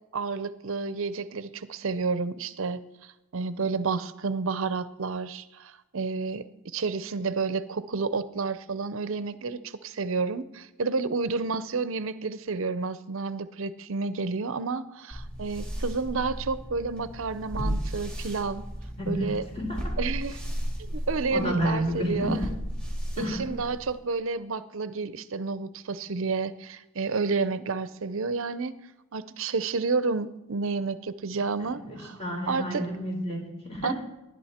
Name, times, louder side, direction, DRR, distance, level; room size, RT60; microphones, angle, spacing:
voice 1, 0.1-18.6 19.1-19.4 20.0-20.4 20.8-22.4 23.2-28.7 29.1-32.2 32.5-32.8 33.8-33.9, right 4 dB, 60° right, 14 dB, 0.6 m, -30 dB
sound 1, 15.1-24.0, equal, 5° left, 3.3 m, -35 dB
voice 2, 19.0-19.8 21.3-22.5 23.2-23.5 31.7-33.9, equal, 25° left, -1 dB, 4.5 m, -30 dB
19.5 x 11.0 x 4.3 m, 0.97 s
head